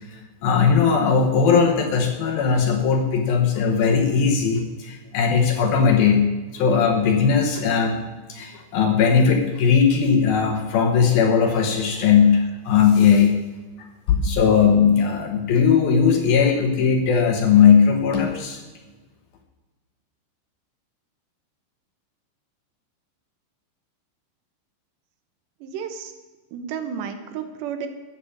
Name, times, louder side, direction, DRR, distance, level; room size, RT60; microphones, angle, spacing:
voice 1, 0.1-6.3 6.5-8.0 8.3-13.4 13.8-18.6, left 6 dB, 65° left, 4 dB, 2.6 m, -18 dB
voice 2, 25.6-26.1 26.5-27.9, right 7 dB, 70° right, 8 dB, 3.1 m, -32 dB
14.0 x 9.2 x 8.5 m, 1.3 s
omnidirectional pair, 5.4 m